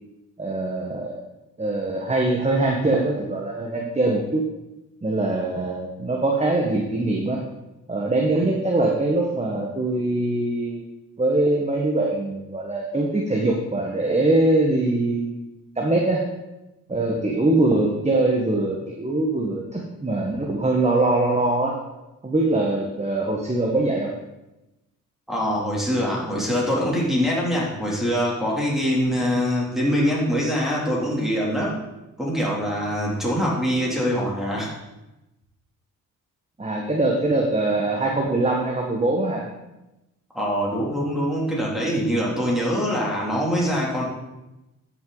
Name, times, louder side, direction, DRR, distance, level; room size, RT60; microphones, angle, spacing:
voice 1, 0.4-1.2 1.6-4.4 5.0-7.4 7.9-10.8 11.2-15.5 15.8-16.2 16.9-21.7 22.2-24.1 36.6-39.4, right 2 dB, 20° right, 0 dB, 1.3 m, -22 dB
voice 2, 25.3-31.8 32.2-34.7 40.3-44.0, equal, ahead, -5 dB, 2.9 m, -23 dB
12.5 x 6.2 x 4.0 m, 0.97 s
cardioid pair, 85°, 33 cm